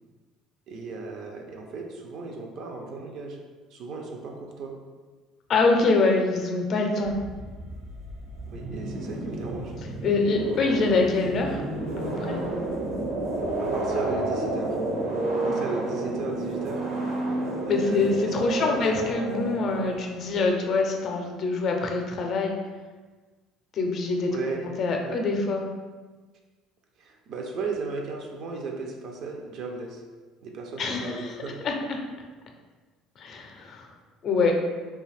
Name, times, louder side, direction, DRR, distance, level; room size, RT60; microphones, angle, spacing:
voice 1, 0.7-3.4 3.7-4.8 8.5-9.7 13.6-14.8 15.3-16.9 17.7-18.8 24.3-24.7 25.0-25.2 27.0-30.0 30.4-31.6, right 4 dB, 55° right, 1 dB, 0.4 m, -36 dB
voice 2, 5.5-7.2 10.0-11.6 12.0-12.4 17.7-22.5 23.7-24.3 24.6-25.6 30.8-31.3 31.6-31.7 33.2-33.9 34.2-34.6, left 3 dB, 45° left, 2 dB, 0.4 m, -24 dB
sound 1, 7.0-20.4, right 2 dB, 85° right, 0.9 m, -31 dB
2.4 x 2.2 x 3.2 m, 1.3 s
cardioid pair, 130°, 0 cm